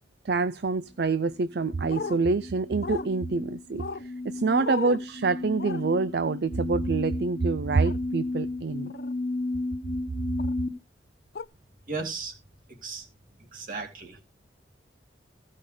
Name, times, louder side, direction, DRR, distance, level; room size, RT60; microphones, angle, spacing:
voice 1, 0.2-8.9, right 4 dB, 65° right, 0.5 m, -26 dB
sound 1, 1.5-10.7, left 2 dB, 25° left, 1.8 m, -34 dB
sound 2, 1.9-2.2 2.8-3.1 3.8-4.0 4.6-5.0 5.6-5.8 7.8-8.0 8.9-9.1 10.4-10.5 11.4-11.5, left 4 dB, 60° left, 0.5 m, -35 dB
voice 2, 11.9-12.3 12.7-13.1 13.4-14.2, right 4 dB, 50° right, 2.7 m, -36 dB
16.0 x 5.5 x 5.0 m
head